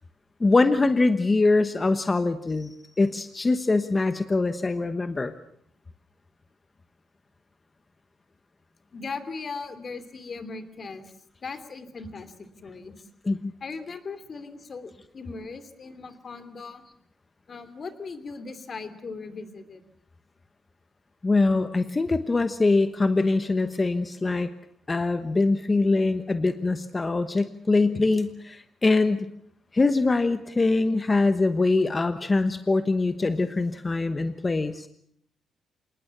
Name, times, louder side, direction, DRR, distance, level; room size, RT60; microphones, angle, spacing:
voice 1, 0.4-5.3 13.3-13.5 21.2-24.5 24.9-29.3 29.7-34.9, left 3 dB, 25° left, 10 dB, 1.1 m, -23 dB
voice 2, 8.9-11.0 11.4-13.1 13.6-16.9 17.5-19.8, left 4 dB, 40° left, 11 dB, 2.9 m, -38 dB
27.0 x 19.5 x 7.4 m, 0.69 s
cardioid pair, 110°, 0 cm